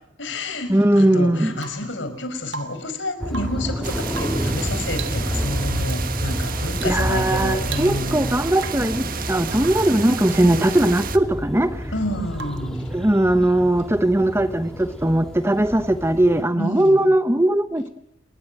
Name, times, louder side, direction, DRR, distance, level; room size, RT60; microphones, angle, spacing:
voice 1, 0.2-8.3 11.9-12.8 16.6-17.1, left 1 dB, 70° left, 5.5 m, -29 dB
voice 2, 0.7-1.5 6.8-11.9 12.9-17.9, right 1 dB, 15° right, 1.0 m, -19 dB
Rain / Water tap faucet / Drip, 1.6-1.9 2.5-2.9 3.2-3.7 4.1-4.5 4.9-5.3 5.8-6.0 6.7-7.0 7.3-7.4 7.6-8.2 8.5-8.9 9.6-9.9 12.3-12.8 14.7-14.8, right 4 dB, 75° right, 2.7 m, -37 dB
sound 1, 3.2-16.4, equal, 5° left, 2.6 m, -29 dB
sound 2, 3.8-11.2, right 6 dB, 50° right, 1.6 m, -32 dB
27.5 x 22.0 x 7.7 m
head